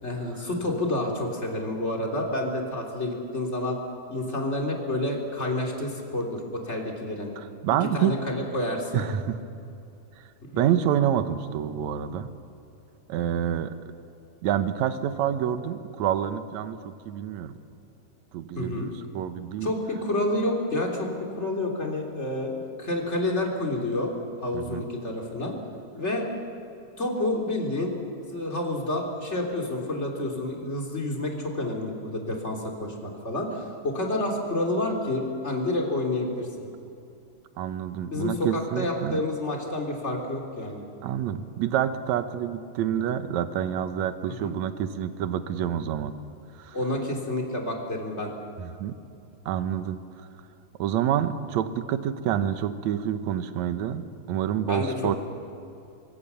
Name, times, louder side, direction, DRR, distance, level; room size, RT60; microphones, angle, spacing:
voice 1, 0.0-3.8 4.1-7.3 7.9-9.1 10.5-10.7 18.6-18.9 19.6-22.5 22.8-24.1 24.4-25.5 25.9-26.3 27.0-27.9 28.3-36.5 38.1-40.8 44.4-44.5 46.7-48.3 54.7-55.2, left 1 dB, 20° left, 1 dB, 3.2 m, -29 dB
voice 2, 7.4-8.1 8.9-9.4 10.2-10.3 10.5-12.3 13.1-13.7 14.4-17.5 18.3-19.7 24.5-24.9 37.6-39.2 41.0-46.1 46.6-46.8 48.6-48.9 49.5-50.0 50.8-55.2, right 10 dB, 70° right, 11 dB, 2.1 m, -27 dB
25.0 x 23.5 x 7.0 m, 2.7 s
omnidirectional pair, 3.8 m